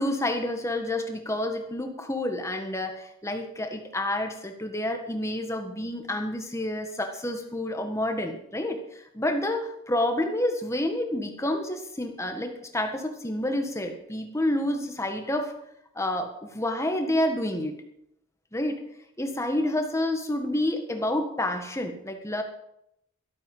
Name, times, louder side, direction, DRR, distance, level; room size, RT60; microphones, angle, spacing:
voice 1, 0.0-8.8 9.1-15.5 15.9-17.7 18.5-18.8 19.2-22.4, left 1 dB, 15° left, 5 dB, 1.6 m, -29 dB
12.5 x 12.5 x 5.5 m, 0.78 s
head